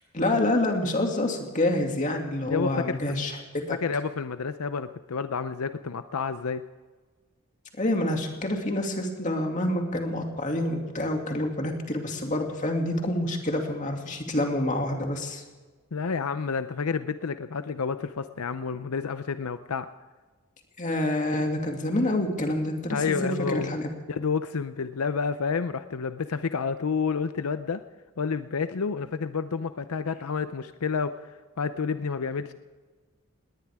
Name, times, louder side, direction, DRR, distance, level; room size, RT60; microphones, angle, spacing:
voice 1, 0.1-3.3 3.7-3.8 7.8-15.4 20.8-23.9, left 1 dB, 35° left, 2 dB, 2.4 m, -27 dB
voice 2, 2.5-3.2 3.7-6.6 15.9-19.9 22.9-23.7 24.1-27.8 28.2-31.3 31.6-32.5, left 5 dB, 80° left, 11 dB, 0.6 m, -29 dB
19.5 x 19.0 x 3.6 m, 1.4 s
head